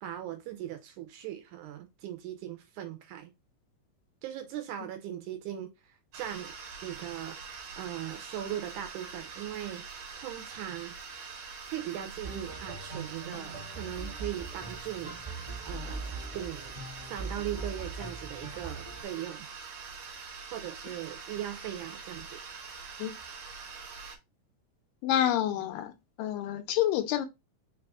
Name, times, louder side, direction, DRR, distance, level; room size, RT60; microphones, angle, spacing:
voice 1, 0.0-3.3 4.2-6.5 6.8-7.4 7.8-9.8 10.2-11.0 11.7-15.2 15.7-19.5 20.5-22.4, right 11 dB, 80° right, 2.0 m, -39 dB
sound 1, 6.1-24.2, right 5 dB, 60° right, 2.0 m, -44 dB
sound 2, 12.2-19.0, right 3 dB, 20° right, 0.7 m, -41 dB
voice 2, 25.0-25.9 26.2-27.3, left 11 dB, 90° left, 2.4 m, -28 dB
5.3 x 2.5 x 3.5 m
omnidirectional pair, 3.8 m